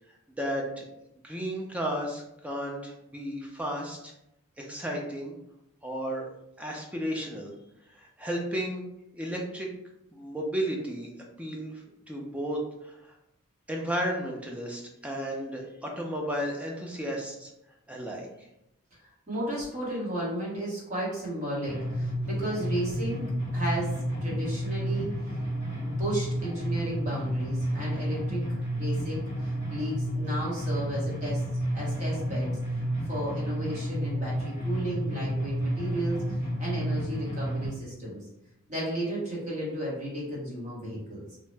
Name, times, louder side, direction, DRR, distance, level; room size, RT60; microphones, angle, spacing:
voice 1, 0.4-0.9 1.2-4.1 4.6-5.3 5.8-6.3 6.6-7.5 8.0-8.9 9.1-9.7 10.1-11.1 11.4-11.8 12.1-13.1 13.7-17.5 17.9-18.3, equal, 5° right, 0 dB, 0.3 m, -33 dB
voice 2, 19.0-23.3 23.5-23.9 24.2-25.1 25.8-28.4 28.7-31.4 31.7-32.6 33.0-38.2 38.7-41.4, right 1 dB, 35° right, -6 dB, 1.1 m, -34 dB
sound 1, 21.7-37.7, equal, 60° right, 1.3 m, -31 dB
2.7 x 2.0 x 3.2 m, 0.83 s
head